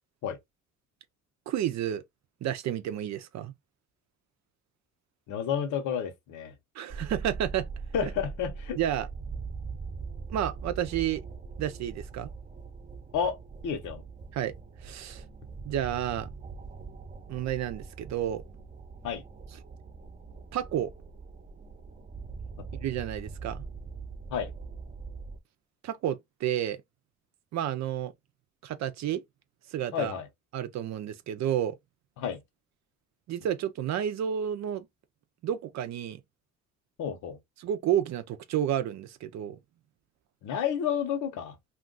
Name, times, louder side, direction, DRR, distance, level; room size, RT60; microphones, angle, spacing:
voice 1, 1.5-2.0 2.4-3.5 6.8-7.7 8.0-8.1 8.8-9.1 10.3-11.2 11.6-12.3 14.3-14.5 14.8-15.2 15.6-16.3 17.3-18.4 20.5-20.9 22.8-23.6 25.8-26.8 27.5-28.1 28.6-29.2 29.7-30.1 30.5-31.8 33.3-34.9 35.4-36.2 37.6-39.6, right 10 dB, 65° right, 0.5 m, -30 dB
voice 2, 5.3-6.5 7.9-8.8 13.1-13.4 13.6-14.0 19.0-19.2 24.3-24.5 29.9-30.2 32.2-32.4 37.0-37.4 40.4-41.5, left 8 dB, 85° left, 0.9 m, -30 dB
sound 1, 6.9-25.4, right 4 dB, 25° right, 0.7 m, -42 dB
2.4 x 2.3 x 3.8 m
cardioid pair, 85°, 29 cm